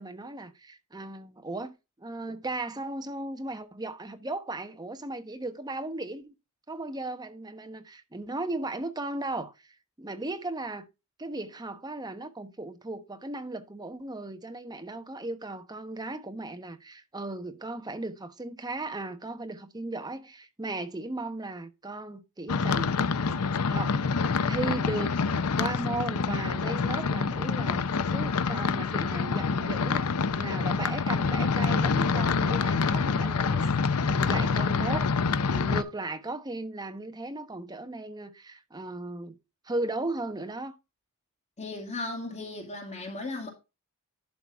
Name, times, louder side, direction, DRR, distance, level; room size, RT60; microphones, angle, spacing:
voice 1, 0.0-6.3 6.7-10.8 11.2-23.1 23.7-24.0 24.5-25.2 25.6-33.7 34.0-39.4 39.6-40.8, right 2 dB, 20° right, 1.1 m, -36 dB
sound 1, 22.5-35.8, left 5 dB, 80° left, 0.7 m, -26 dB
voice 2, 41.6-43.5, left 2 dB, 30° left, 2.3 m, -36 dB
11.5 x 4.0 x 4.6 m
head